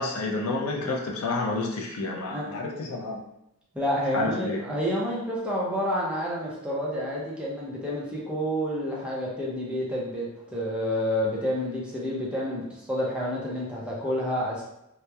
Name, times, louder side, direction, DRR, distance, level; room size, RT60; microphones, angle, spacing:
voice 1, 0.0-3.2 4.1-4.6, left 3 dB, 80° left, 0 dB, 0.5 m, -29 dB
voice 2, 3.7-14.6, equal, 5° right, -6 dB, 0.4 m, -29 dB
2.9 x 2.0 x 2.2 m, 0.82 s
head